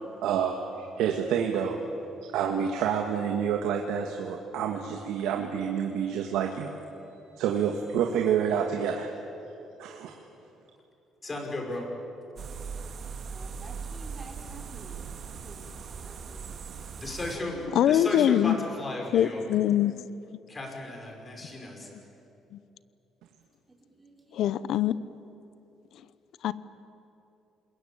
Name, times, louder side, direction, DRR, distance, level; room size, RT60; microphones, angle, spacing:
voice 1, 0.2-1.8 2.2-6.7 7.3-9.1 9.8-10.1, right 8 dB, 85° right, 3 dB, 1.8 m, -28 dB
voice 2, 11.2-11.9 17.0-17.6 17.9-19.5 20.5-21.9, left 2 dB, 25° left, 1 dB, 5.7 m, -35 dB
sound 1, 12.4-17.3, right 6 dB, 50° right, 2.4 m, -39 dB
voice 3, 13.3-15.1 15.4-15.7 16.0-16.9 17.3-17.6 23.7-24.6, right 1 dB, 15° right, 1 dB, 4.7 m, -50 dB
voice 4, 17.7-18.6 19.1-20.1 20.3-20.4 22.5-22.6 24.3-24.9 26.4-26.5, left 11 dB, 70° left, 16 dB, 0.8 m, -23 dB
27.5 x 21.5 x 8.9 m, 2.9 s
cardioid pair, 110°, 0 cm